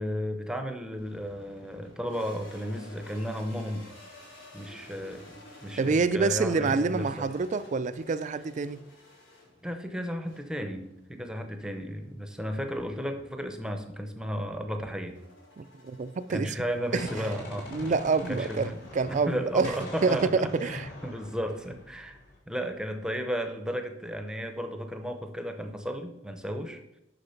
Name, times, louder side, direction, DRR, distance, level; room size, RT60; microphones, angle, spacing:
voice 1, 0.0-3.9 4.5-5.4 5.6-7.3 9.6-15.2 16.3-17.9 18.3-18.8 19.1-22.2 22.5-26.8, equal, 5° right, 0.7 m, -34 dB
sound 1, 1.0-20.2, left 1 dB, 85° left, 3.2 m, -53 dB
voice 2, 5.8-8.8 15.6-16.5 16.9-17.1 17.7-19.7 20.0-20.9, right 4 dB, 40° right, 0.3 m, -27 dB
Gunshot gunfire, 16.5-19.4 19.6-22.4, left 2 dB, 55° left, 3.3 m, -43 dB
6.7 x 5.8 x 5.8 m
head